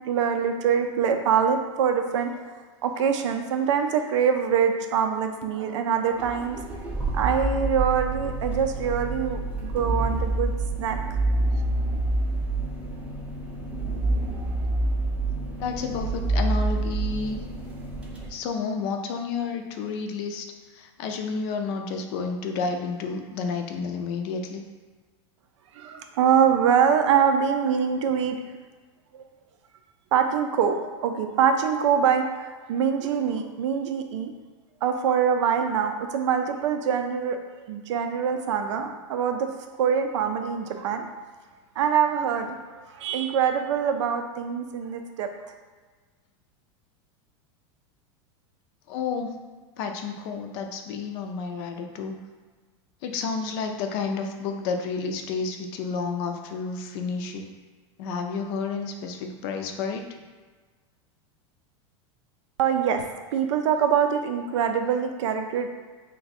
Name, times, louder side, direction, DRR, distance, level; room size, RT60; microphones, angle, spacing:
voice 1, 0.1-2.3 2.8-6.6 7.1-10.5 10.8-11.0 25.8-28.4 30.1-34.3 34.8-37.4 37.7-39.5 39.8-41.0 41.8-45.3 62.6-63.1 63.3-65.7, right 7 dB, 80° right, 6 dB, 0.4 m, -24 dB
sound 1, 6.2-18.3, right 2 dB, 10° right, 0.5 m, -27 dB
voice 2, 15.6-17.4 18.3-24.6 48.9-49.3 49.8-52.2 53.0-57.5 58.0-60.0, left 5 dB, 60° left, 4 dB, 0.4 m, -30 dB
2.6 x 2.2 x 4.0 m, 1.4 s
supercardioid pair, 120°, 15 cm